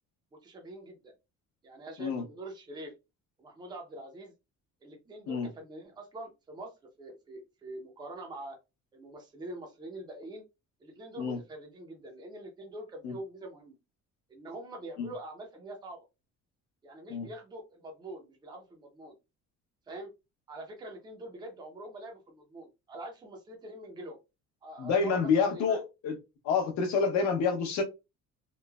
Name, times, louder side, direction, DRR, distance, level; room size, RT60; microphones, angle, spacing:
voice 1, 0.3-1.1 1.6-2.9 3.4-4.3 4.8-6.7 7.0-8.6 8.9-10.4 10.8-13.8 14.3-16.1 16.8-19.2 19.9-20.1 20.5-24.2 24.6-25.8, right 1 dB, 15° right, 0.5 m, -44 dB
voice 2, 24.8-26.2 26.4-27.8, left 5 dB, 60° left, 0.8 m, -28 dB
3.1 x 2.0 x 2.2 m
cardioid pair, 175°, 31 cm